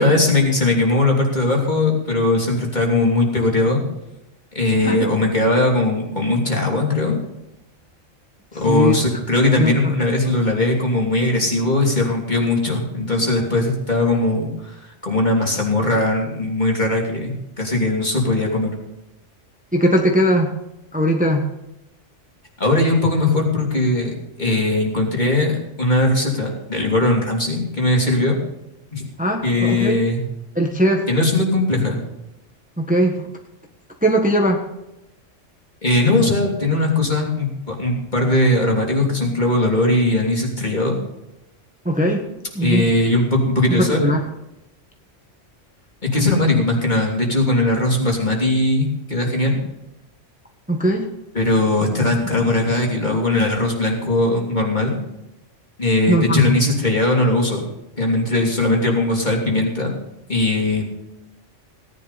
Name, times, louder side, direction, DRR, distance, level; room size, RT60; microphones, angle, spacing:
voice 1, 0.0-3.8 4.5-7.2 8.5-18.7 22.6-28.3 28.9-29.0 29.4-30.2 31.1-32.0 35.8-41.0 42.6-44.1 46.1-49.6 51.3-54.9 55.8-57.6 58.0-59.9 60.3-60.8, left 2 dB, 35° left, 0 dB, 3.2 m, -19 dB
voice 2, 8.7-9.0 9.6-9.9 10.2-10.3 19.7-20.5 20.9-21.5 29.2-30.0 30.5-31.1 32.8-33.3 34.0-34.6 41.8-42.3 42.5-42.9 43.7-44.2 50.7-51.1 56.1-56.6, equal, 5° right, 2 dB, 1.3 m, -19 dB
17.5 x 10.5 x 4.2 m, 0.92 s
omnidirectional pair, 1.3 m